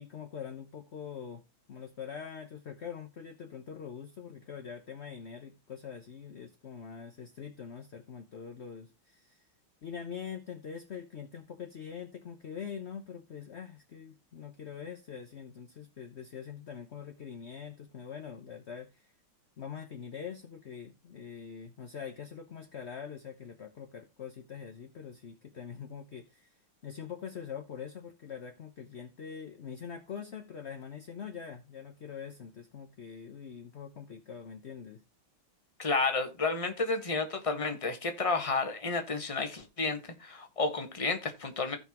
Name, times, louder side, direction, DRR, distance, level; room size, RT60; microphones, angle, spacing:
voice 1, 0.0-1.4 1.7-9.5 9.8-19.1 19.6-26.6 26.8-35.0, left 7 dB, 50° left, 0.8 m, -44 dB
voice 2, 35.8-41.8, left 3 dB, 20° left, 1.2 m, -31 dB
16.0 x 5.6 x 3.0 m
omnidirectional pair, 2.3 m